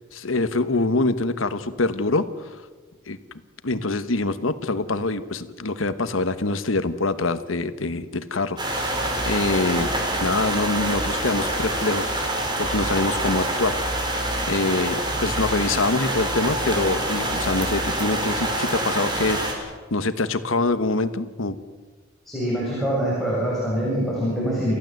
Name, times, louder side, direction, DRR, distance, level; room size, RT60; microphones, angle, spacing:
voice 1, 0.0-2.6 3.1-3.2 3.6-9.9 10.2-13.8 14.4-21.6, left 3 dB, 80° left, 12 dB, 1.3 m, -25 dB
sound 1, 8.6-19.5, right 1 dB, 20° right, 4.2 m, -26 dB
voice 2, 22.2-24.7, equal, ahead, -7 dB, 7.6 m, -24 dB
29.0 x 15.0 x 7.9 m, 1.4 s
head